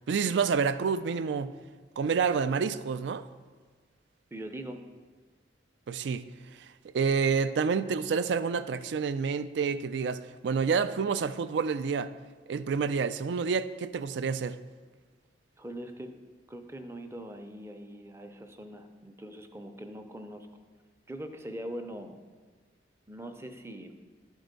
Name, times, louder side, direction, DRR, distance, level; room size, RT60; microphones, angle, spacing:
voice 1, 0.1-1.5 2.0-3.2 5.9-6.3 6.9-12.1 12.5-14.6, right 5 dB, 70° right, 0.3 m, -28 dB
voice 2, 4.3-4.8 15.6-16.2 16.5-20.5 21.1-22.2 23.1-23.9, right 1 dB, 15° right, 0.5 m, -42 dB
11.0 x 4.5 x 5.2 m
head